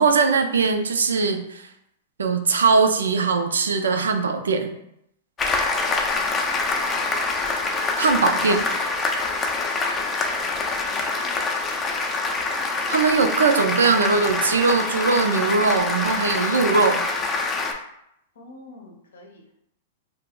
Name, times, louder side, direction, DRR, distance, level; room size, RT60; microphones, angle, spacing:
voice 1, 0.0-1.7 2.2-4.7 8.0-8.6 12.9-17.0, right 4 dB, 85° right, 6 dB, 0.3 m, -20 dB
Applause, 5.4-17.7, left 3 dB, 25° left, 0.4 m, -25 dB
voice 2, 6.4-7.1 10.8-11.4 18.3-19.5, left 2 dB, 80° left, 0 dB, 0.7 m, -45 dB
2.3 x 2.0 x 3.6 m, 0.77 s
hypercardioid pair, 115°, 0 cm